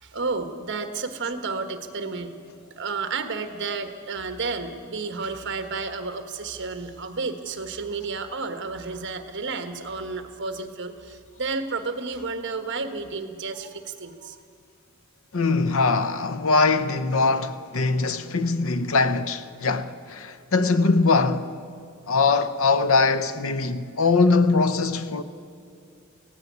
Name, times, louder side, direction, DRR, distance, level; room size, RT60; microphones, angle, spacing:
voice 1, 0.0-14.4, right 4 dB, 55° right, 1.4 m, -31 dB
voice 2, 15.3-21.5 22.1-25.2, left 3 dB, 70° left, 0.8 m, -22 dB
16.5 x 16.5 x 9.5 m
head